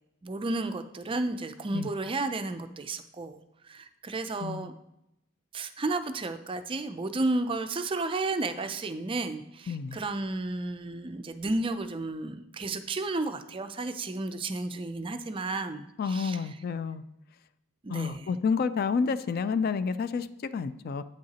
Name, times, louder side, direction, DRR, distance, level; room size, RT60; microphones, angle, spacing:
voice 1, 0.2-4.7 5.5-16.4 17.8-18.3, right 2 dB, 25° right, 9 dB, 0.4 m, -32 dB
voice 2, 9.7-10.0 16.0-17.0 17.9-21.0, left 5 dB, 45° left, 13 dB, 0.3 m, -29 dB
8.6 x 7.5 x 2.9 m, 0.83 s
head